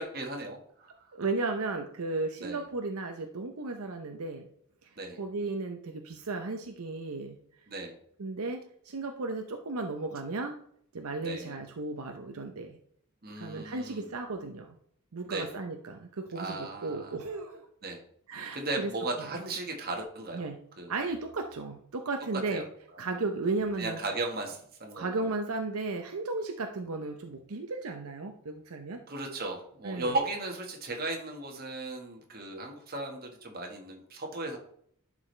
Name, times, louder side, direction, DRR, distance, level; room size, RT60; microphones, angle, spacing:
voice 1, 0.0-1.1 2.4-2.6 5.0-5.2 7.7-7.9 11.2-11.6 13.2-14.1 15.3-15.5 16.3-17.2 17.8-18.0 18.4-20.4 20.8-20.9 22.3-22.6 22.9-23.0 23.8-25.3 29.1-34.6, right 2 dB, 45° right, 2 dB, 1.5 m, -36 dB
voice 2, 1.1-4.5 5.2-7.4 8.2-10.6 10.9-12.8 13.4-14.8 15.1-17.7 18.3-18.9 20.3-20.6 20.9-22.6 23.0-24.0 25.0-29.0 29.8-30.1, right 3 dB, 75° right, 5 dB, 0.7 m, -34 dB
11.0 x 4.9 x 3.3 m, 0.67 s
head